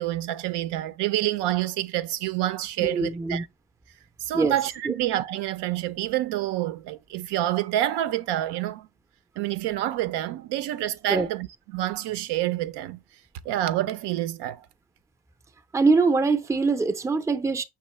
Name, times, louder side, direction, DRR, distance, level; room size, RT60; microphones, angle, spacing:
voice 1, 0.0-3.5 4.2-8.9 9.4-13.0 13.4-14.7, right 14 dB, 80° right, 0.5 m, -28 dB
voice 2, 2.8-3.5 4.3-4.6 4.8-4.9 11.1-11.3 15.7-17.6, right 4 dB, 10° right, 0.4 m, -23 dB
5.7 x 3.0 x 3.0 m
cardioid pair, 95°, 40 cm